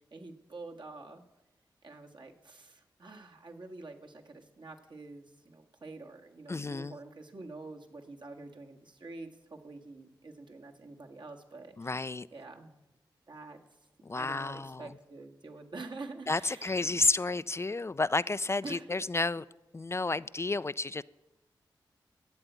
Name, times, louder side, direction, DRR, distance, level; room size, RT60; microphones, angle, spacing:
voice 1, 0.1-1.2 1.8-12.0 12.3-12.8 13.3-13.6 14.1-16.8 18.6-18.9, right 3 dB, 65° right, 1.7 m, -47 dB
voice 2, 6.5-7.0 11.8-12.3 14.0-14.9 16.3-19.5 19.7-21.0, left 3 dB, 30° left, 0.4 m, -31 dB
12.5 x 8.0 x 9.2 m
cardioid pair, 40°, 9 cm